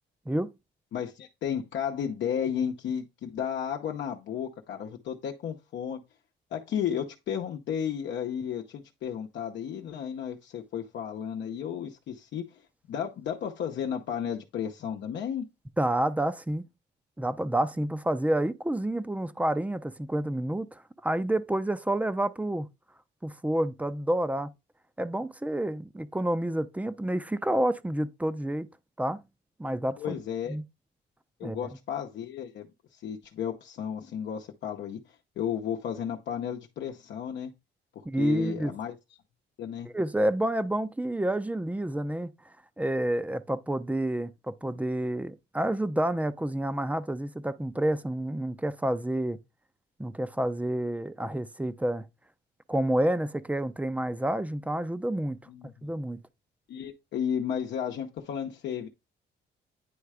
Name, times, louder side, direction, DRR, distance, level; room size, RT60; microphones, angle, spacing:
voice 1, 0.9-6.0 6.5-12.6 12.9-15.5 30.0-30.6 31.4-32.7 32.9-35.0 35.4-37.5 38.2-39.0 39.6-39.9 55.5-55.7 56.7-58.9, left 8 dB, 70° left, 0.8 m, -33 dB
voice 2, 15.8-16.7 17.2-22.7 23.2-24.5 25.0-28.7 29.0-29.2 29.6-30.2 30.5-30.6 31.4-31.6 38.0-38.7 39.9-42.3 42.8-49.4 50.0-52.0 52.7-55.4 55.8-56.2, right 1 dB, 5° right, 0.5 m, -29 dB
9.4 x 3.2 x 4.9 m
cardioid pair, 100°, 19 cm